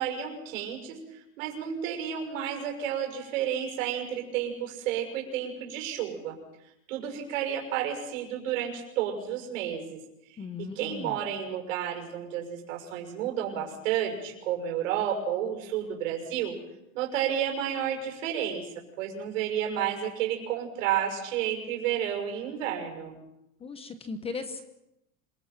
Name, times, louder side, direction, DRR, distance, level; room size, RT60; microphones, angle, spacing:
voice 1, 0.0-6.4 6.9-10.0 10.6-16.6 16.9-18.7 19.0-23.2, right 9 dB, 70° right, 3 dB, 6.5 m, -31 dB
voice 2, 10.4-11.2 23.6-24.6, left 4 dB, 15° left, 10 dB, 1.0 m, -37 dB
27.0 x 23.5 x 6.0 m, 0.89 s
supercardioid pair, 165°, 41 cm